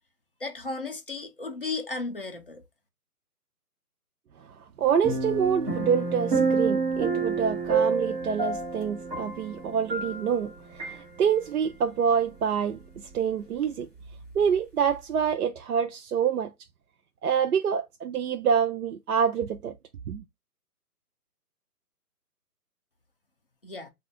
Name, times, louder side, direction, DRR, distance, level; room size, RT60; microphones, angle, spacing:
voice 1, 0.4-2.6 23.6-23.9, left 3 dB, 40° left, 0.4 m, -34 dB
voice 2, 4.5-12.8 13.1-13.9 14.3-16.5 17.2-19.7 20.1-20.2, right 7 dB, 70° right, 0.5 m, -26 dB
sound 1, 5.0-10.5 10.8-11.0, right 4 dB, 25° right, 1.2 m, -28 dB
2.5 x 2.4 x 3.5 m
hypercardioid pair, 160°, 47 cm